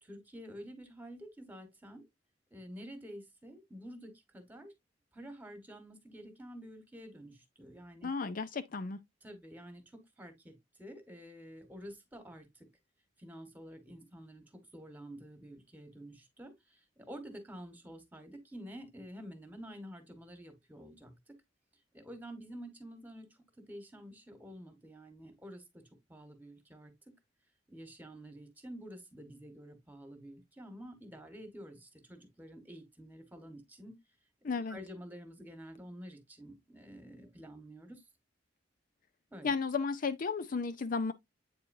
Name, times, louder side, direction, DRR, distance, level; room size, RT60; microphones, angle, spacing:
voice 1, 0.0-2.0 2.5-4.7 5.1-8.1 9.2-12.7 13.2-21.4 21.9-23.3 23.6-25.8 26.1-26.9 27.7-33.9 34.5-38.0 39.3-39.5, equal, 10° right, 1.5 m, -49 dB
voice 2, 8.0-9.0 34.4-34.8 39.4-41.1, left 4 dB, 50° left, 0.5 m, -33 dB
8.3 x 4.3 x 2.6 m
head